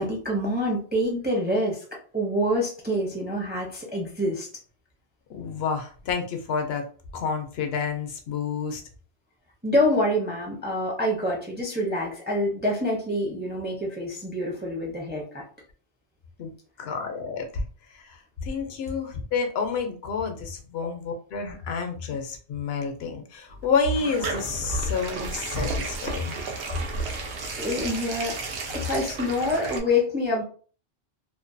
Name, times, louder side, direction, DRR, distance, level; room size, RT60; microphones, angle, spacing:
voice 1, 0.0-1.8 2.1-4.5 9.6-15.4 27.1-28.4 28.7-30.4, left 1 dB, 15° right, -1 dB, 0.4 m, -26 dB
voice 2, 5.3-6.8 7.1-8.8 16.4-17.6 17.9-26.4 29.4-29.5, left 5 dB, 75° left, 5 dB, 0.8 m, -29 dB
sound 1, 23.5-29.8, right 3 dB, 90° right, 0.9 m, -32 dB
2.5 x 2.2 x 2.5 m, 0.41 s
omnidirectional pair, 1.1 m